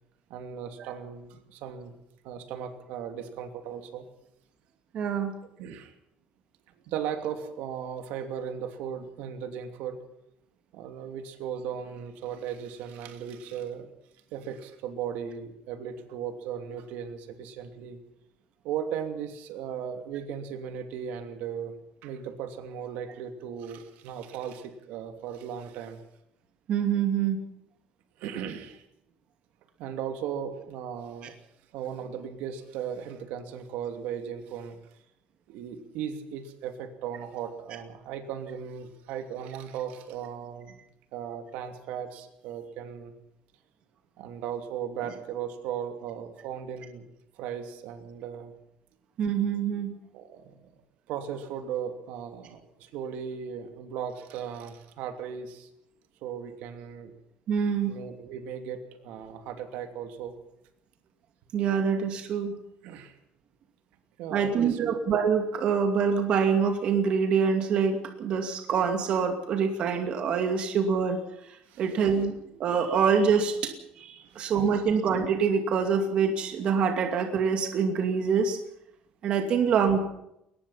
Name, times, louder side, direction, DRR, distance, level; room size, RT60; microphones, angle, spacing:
voice 1, 0.3-1.9 2.2-4.1 5.6-5.9 6.9-10.0 10.7-13.9 14.3-18.0 18.6-21.8 22.0-26.0 28.2-28.8 29.8-31.3 31.7-34.8 35.5-40.8 41.1-43.1 44.2-47.1 47.4-48.5 50.1-50.7 51.1-55.7 56.2-57.1 57.9-60.4 62.8-63.1 64.2-64.9 71.7-72.1 74.2-74.8, right 8 dB, 70° right, 6 dB, 2.8 m, -37 dB
voice 2, 4.9-5.3 26.7-27.4 49.2-49.9 57.5-57.9 61.5-62.5 64.3-71.2 71.8-78.6 79.2-80.0, right 6 dB, 40° right, 4 dB, 2.5 m, -25 dB
22.5 x 20.0 x 5.8 m, 0.80 s
cardioid pair, 175°, 3 cm